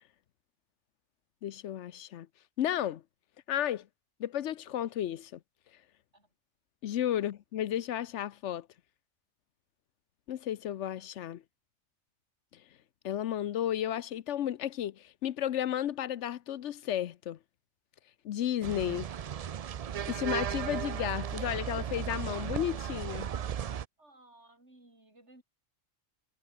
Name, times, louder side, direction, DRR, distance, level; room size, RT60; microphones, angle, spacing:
voice 1, 1.4-2.3 2.6-3.0 3.5-3.9 4.2-5.4 6.8-8.7 10.3-11.4 13.0-17.4 18.2-19.1 20.1-23.3, left 11 dB, 80° left, 1.0 m, -33 dB
sound 1, 18.6-23.9, right 8 dB, 55° right, 0.4 m, -35 dB
voice 2, 24.0-25.4, right 2 dB, 70° right, 6.5 m, -58 dB
omnidirectional pair, 1.2 m